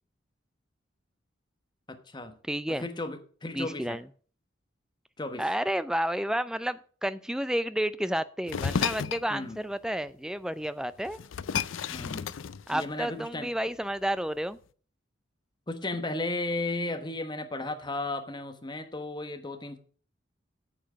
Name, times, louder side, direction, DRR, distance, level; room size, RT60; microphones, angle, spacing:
voice 1, 1.9-2.4 2.7-4.0 5.2-5.5 9.3-9.6 11.9-12.3 12.7-13.5 15.7-19.8, left 2 dB, 20° left, 8 dB, 1.1 m, -34 dB
voice 2, 2.5-2.9 3.5-4.0 5.4-11.2 12.7-14.6, right 1 dB, 5° right, 14 dB, 0.4 m, -31 dB
sound 1, 8.5-9.3 10.6-10.7 11.0-13.1, left 7 dB, 80° left, 0.5 m, -32 dB
8.7 x 7.3 x 6.2 m, 0.43 s
head